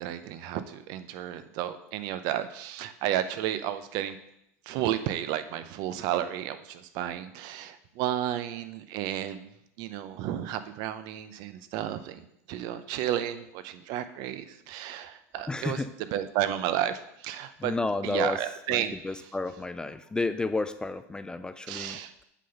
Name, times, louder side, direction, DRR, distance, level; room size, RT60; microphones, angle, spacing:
voice 1, 0.0-4.2 4.7-9.5 9.8-15.8 16.1-17.7 18.0-18.9 21.7-22.1, right 11 dB, 55° right, 11 dB, 0.6 m, -32 dB
voice 2, 15.5-15.9 17.6-18.4 18.7-22.0, left 3 dB, 10° left, 11 dB, 0.3 m, -31 dB
8.2 x 3.9 x 5.7 m, 0.78 s
supercardioid pair, 120°, 8 cm